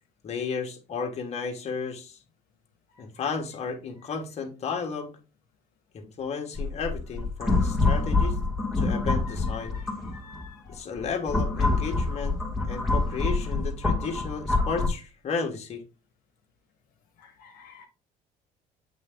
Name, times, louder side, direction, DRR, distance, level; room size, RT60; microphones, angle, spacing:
voice 1, 0.2-2.2 3.0-5.1 5.9-8.4 8.7-9.8 10.7-12.4 12.7-15.8, left 5 dB, 45° left, 2 dB, 1.6 m, -33 dB
sound 1, 6.6-10.4 11.0-14.9, left 3 dB, ahead, 2.0 m, -26 dB
voice 2, 9.5-10.8 17.2-17.9, left 5 dB, 65° left, 2 dB, 1.2 m, -51 dB
7.8 x 3.3 x 3.8 m, 0.32 s
cardioid pair, 105°, 16 cm